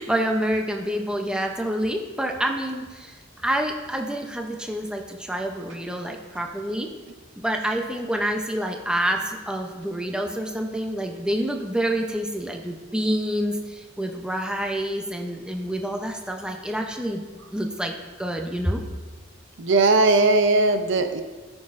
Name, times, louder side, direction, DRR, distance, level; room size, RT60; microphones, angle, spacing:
voice 1, 0.0-3.1 3.4-6.9 7.4-17.2 17.5-18.8, right 1 dB, 5° right, 2 dB, 0.6 m, -27 dB
voice 2, 19.6-21.2, right 3 dB, 65° right, 8 dB, 0.6 m, -18 dB
13.5 x 6.1 x 2.5 m, 1.3 s
head